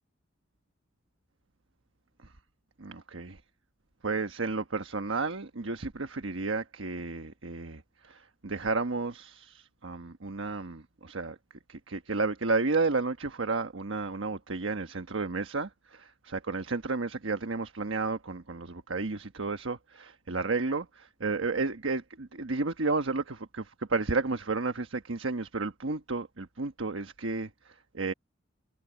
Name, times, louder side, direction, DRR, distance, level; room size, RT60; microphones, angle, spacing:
voice 1, 2.8-3.4 4.0-11.4 11.7-28.1, right 3 dB, 85° right, 1.2 m, -32 dB
head